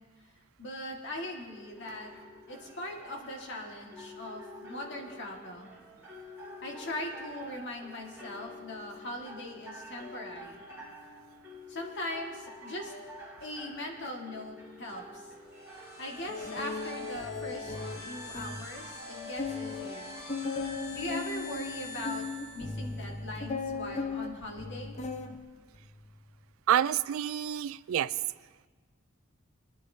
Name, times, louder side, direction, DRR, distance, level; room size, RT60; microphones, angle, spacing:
voice 1, 0.6-2.1 2.5-5.7 6.6-10.7 11.7-12.9 13.4-15.3 16.0-17.8 18.0-20.1 20.9-22.3 22.5-25.0, left 1 dB, 55° left, 0 dB, 1.7 m, -40 dB
sound 1, 1.5-18.5, left 1 dB, 10° right, 2.9 m, -49 dB
sound 2, 15.4-23.1, left 2 dB, 85° left, 3.1 m, -44 dB
sound 3, 16.3-18.7 19.0-19.1 19.4-25.4 25.7-26.2, left 4 dB, 35° left, 0.8 m, -37 dB
voice 2, 26.7-28.1, right 10 dB, 75° right, 18 dB, 0.3 m, -28 dB
24.5 x 9.8 x 2.7 m, 1.4 s
head